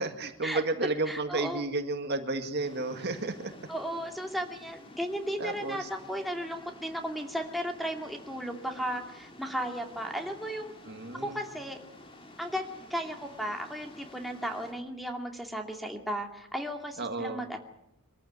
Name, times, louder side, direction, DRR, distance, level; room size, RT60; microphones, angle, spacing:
voice 1, 0.0-3.5 5.4-5.9 10.9-11.4 17.0-17.4, right 2 dB, 50° right, 6 dB, 1.9 m, -32 dB
voice 2, 1.1-1.6 3.7-10.7 11.1-11.8 12.4-12.6 12.9-17.6, equal, ahead, 1 dB, 2.5 m, -35 dB
sound 1, 2.6-14.7, left 1 dB, 25° left, 2.8 m, -51 dB
24.5 x 14.5 x 9.6 m, 0.82 s
head